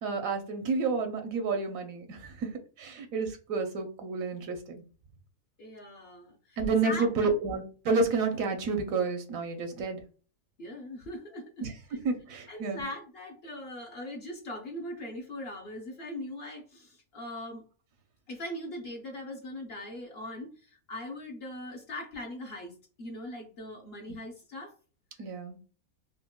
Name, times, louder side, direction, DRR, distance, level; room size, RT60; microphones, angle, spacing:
voice 1, 0.0-2.5 2.8-4.8 6.6-10.0 11.6-12.8 24.1-24.2 25.2-25.6, right 4 dB, 75° right, 5 dB, 1.1 m, -30 dB
voice 2, 5.6-7.3 10.6-11.6 12.5-17.6 18.3-24.7, left 1 dB, 55° left, 2 dB, 0.8 m, -40 dB
4.4 x 2.1 x 2.2 m, 0.37 s
omnidirectional pair, 1.5 m